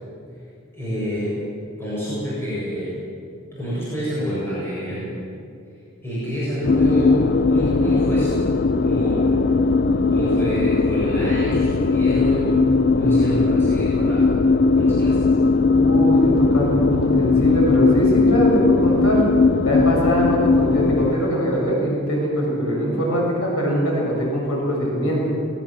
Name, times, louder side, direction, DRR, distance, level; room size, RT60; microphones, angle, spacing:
voice 1, 0.7-1.4 1.8-2.9 3.5-5.0 6.0-8.4 8.8-9.4 10.1-14.4 14.7-15.2, equal, 10° left, -9 dB, 7.7 m, -27 dB
sound 1, 6.6-21.2, left 3 dB, 50° left, 0.5 m, -18 dB
voice 2, 15.7-19.3 19.6-25.3, equal, 80° left, -3 dB, 7.0 m, -22 dB
20.5 x 19.0 x 7.5 m, 2.4 s
head